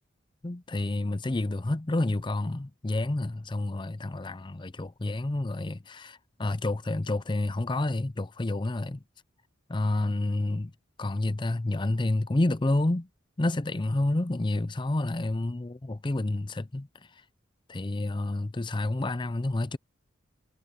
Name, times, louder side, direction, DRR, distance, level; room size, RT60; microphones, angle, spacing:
voice 1, 0.4-9.0 9.7-10.7 11.0-13.1 13.4-16.9 17.7-19.8, left 2 dB, 25° left, 0.5 m, -29 dB
head